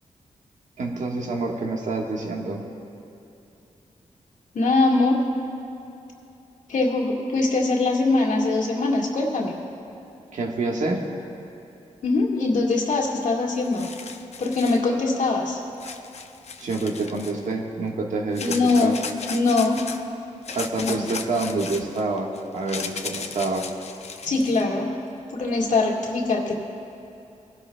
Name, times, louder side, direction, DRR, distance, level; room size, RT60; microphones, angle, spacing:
voice 1, 0.8-2.6 10.3-11.0 16.6-18.9 20.5-23.7, right 3 dB, 75° right, 0 dB, 1.5 m, -27 dB
voice 2, 4.5-5.2 6.7-9.6 12.0-13.9 14.4-15.6 18.4-19.0 19.3-19.8 20.8-21.0 24.2-24.9 25.3-26.6, left 3 dB, 75° left, -1 dB, 1.8 m, -22 dB
sound 1, 13.2-13.3 13.5-14.8 15.8-17.5 18.3-20.0 20.4-24.6, left 5 dB, 60° left, 0.7 m, -36 dB
21.0 x 11.5 x 2.3 m, 2.8 s
cardioid pair, 90°, 13 cm